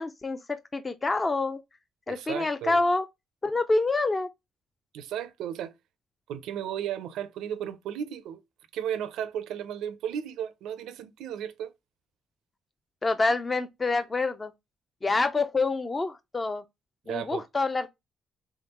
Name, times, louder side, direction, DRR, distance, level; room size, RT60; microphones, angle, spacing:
voice 1, 0.0-1.6 2.1-3.1 3.4-4.3 13.0-14.5 15.0-16.6 17.1-17.9, left 3 dB, 25° left, 0.4 m, -27 dB
voice 2, 2.1-2.8 4.9-5.7 6.3-8.4 8.7-11.7 17.1-17.4, right 9 dB, 85° right, 0.5 m, -34 dB
3.6 x 3.5 x 2.8 m
cardioid pair, 90°, 0 cm